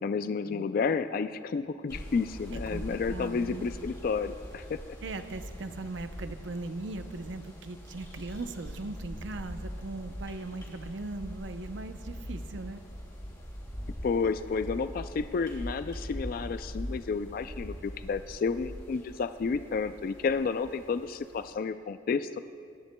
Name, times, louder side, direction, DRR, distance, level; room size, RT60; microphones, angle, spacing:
voice 1, 0.0-4.8 14.0-22.4, left 5 dB, 50° left, 11 dB, 0.3 m, -31 dB
sound 1, 1.9-21.5, equal, 20° left, 2.9 m, -42 dB
voice 2, 2.5-3.7 5.0-12.8, right 2 dB, 70° right, 9 dB, 0.6 m, -39 dB
24.0 x 10.5 x 2.2 m, 2.3 s
head